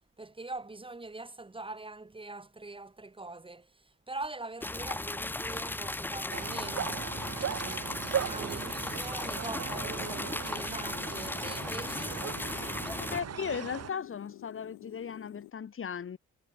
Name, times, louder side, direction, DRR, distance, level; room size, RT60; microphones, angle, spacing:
voice 1, 0.2-7.0 7.3-12.2, right 2 dB, 15° right, 1.9 m, -43 dB
sound 1, 4.6-13.2, left 2 dB, 5° left, 0.4 m, -36 dB
sound 2, 6.3-13.9, right 9 dB, 55° right, 2.5 m, -38 dB
sound 3, 9.9-15.5, left 17 dB, 90° left, 1.4 m, -50 dB
voice 2, 13.0-16.2, left 7 dB, 45° left, 2.0 m, -37 dB
cardioid pair, 90°, 30 cm